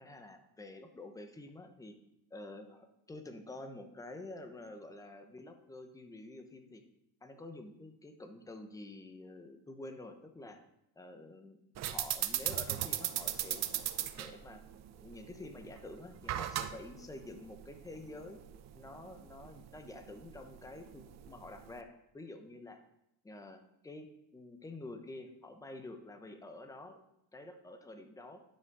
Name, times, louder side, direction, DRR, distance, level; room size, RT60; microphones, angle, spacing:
voice 1, 0.0-2.0 2.3-6.8 7.2-10.6 11.0-11.6 11.9-13.7 14.2-14.6 15.0-18.4 18.7-22.8 23.2-27.0 27.3-28.4, left 2 dB, 10° left, 6 dB, 0.8 m, -48 dB
sound 1, 11.8-21.8, right 12 dB, 40° right, 0.6 m, -39 dB
10.5 x 6.2 x 4.7 m, 0.81 s
cardioid pair, 155°, 40 cm